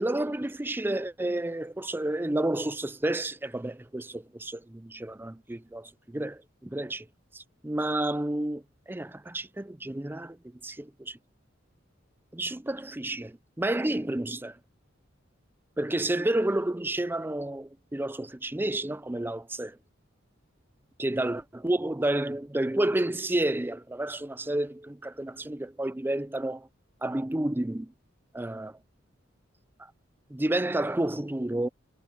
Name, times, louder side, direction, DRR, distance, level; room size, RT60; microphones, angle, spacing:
voice 1, 0.0-7.1 7.3-10.4 10.6-11.2 12.3-14.6 15.8-19.8 21.0-26.7 27.0-27.9 28.3-28.8 29.8-29.9 30.3-31.7, right 1 dB, 10° right, 0.5 m, -30 dB
head